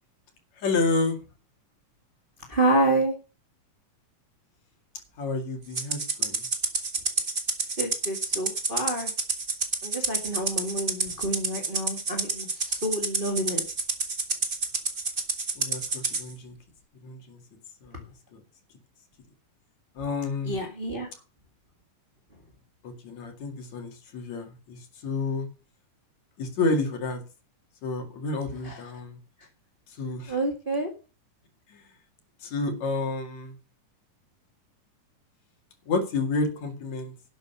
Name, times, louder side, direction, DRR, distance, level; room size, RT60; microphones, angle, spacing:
voice 1, 0.5-1.2 5.2-6.5 15.5-16.5 17.0-17.4 17.8-18.4 19.9-20.6 22.8-25.5 26.4-27.2 27.8-29.2 29.9-30.3 31.7-31.9 32.4-33.6 35.9-37.1, left 3 dB, 60° left, 5 dB, 3.4 m, -30 dB
voice 2, 2.5-3.1 7.8-9.1 9.8-13.6 20.4-21.1 28.6-28.8 30.3-30.9, right 1 dB, 20° right, 2 dB, 1.7 m, -28 dB
Rattle (instrument), 5.7-16.2, right 4 dB, 45° right, 0.6 m, -29 dB
11.5 x 7.0 x 6.8 m, 0.33 s
omnidirectional pair, 3.7 m